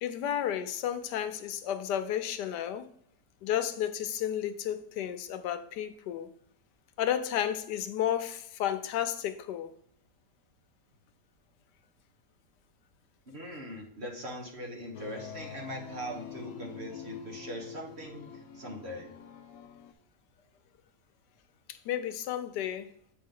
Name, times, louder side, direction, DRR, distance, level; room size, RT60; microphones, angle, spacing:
voice 1, 0.0-2.9 3.4-6.3 7.0-9.7 21.7-22.9, left 10 dB, 85° left, 1.3 m, -32 dB
voice 2, 13.3-19.2, equal, 45° right, 1.3 m, -41 dB
sound 1, 14.9-19.9, left 7 dB, 65° left, 1.0 m, -45 dB
7.5 x 5.2 x 3.7 m
omnidirectional pair, 1.8 m